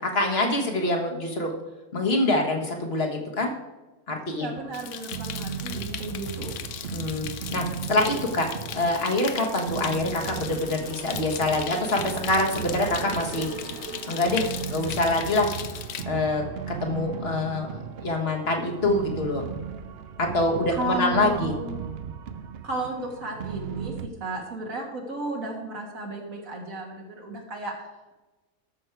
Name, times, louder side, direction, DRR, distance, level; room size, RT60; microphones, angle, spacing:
voice 1, 0.0-1.5 1.9-3.5 4.1-4.5 6.9-13.5 14.1-15.5 16.0-19.4 20.2-21.5, left 2 dB, 45° left, 2 dB, 1.6 m, -25 dB
voice 2, 4.3-6.5 20.7-21.7 22.6-27.7, right 2 dB, 75° right, 0 dB, 2.4 m, -33 dB
sound 1, 4.6-24.1, right 7 dB, 55° right, 0.8 m, -36 dB
sound 2, 4.7-16.0, left 9 dB, 65° left, 0.9 m, -38 dB
13.5 x 6.5 x 4.5 m, 1.1 s
omnidirectional pair, 1.5 m